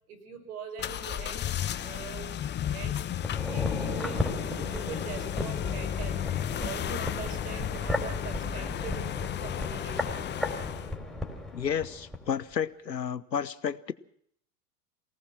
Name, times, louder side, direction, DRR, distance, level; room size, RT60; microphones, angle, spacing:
voice 1, 0.1-1.5 1.8-2.3 2.6-3.0 3.4-10.3, right 6 dB, 60° right, 8 dB, 5.7 m, -42 dB
sound 1, 0.8-10.9, left 11 dB, 20° left, 1.0 m, -33 dB
sound 2, 3.2-12.2 12.5-12.6, left 2 dB, ahead, 4.2 m, -35 dB
voice 2, 11.5-13.9, left 8 dB, 85° left, 17 dB, 1.1 m, -31 dB
23.5 x 18.5 x 6.1 m, 0.66 s
figure-of-eight pair, 95°, 49 cm